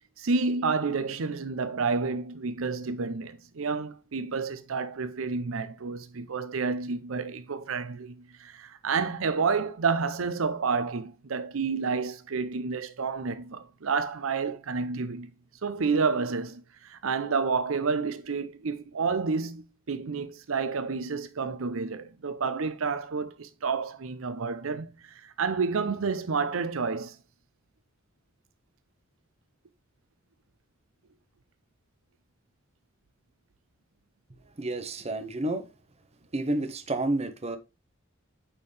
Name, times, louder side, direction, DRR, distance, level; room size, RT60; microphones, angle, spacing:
voice 1, 0.2-15.3 15.6-27.2, right 4 dB, 80° right, 0.6 m, -30 dB
voice 2, 34.4-35.7 36.3-37.6, right 2 dB, 30° right, 0.8 m, -30 dB
8.8 x 4.5 x 3.2 m
head